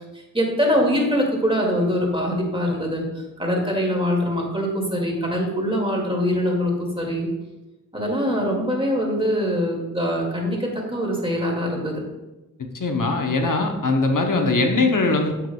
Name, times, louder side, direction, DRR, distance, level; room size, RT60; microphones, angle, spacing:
voice 1, 0.3-3.0 3.4-7.3 7.9-12.0, equal, 15° right, -1 dB, 2.2 m, -23 dB
voice 2, 12.7-15.5, left 3 dB, 85° left, 4 dB, 0.8 m, -21 dB
9.2 x 7.9 x 2.3 m, 1.0 s
wide cardioid pair, 45°, 31 cm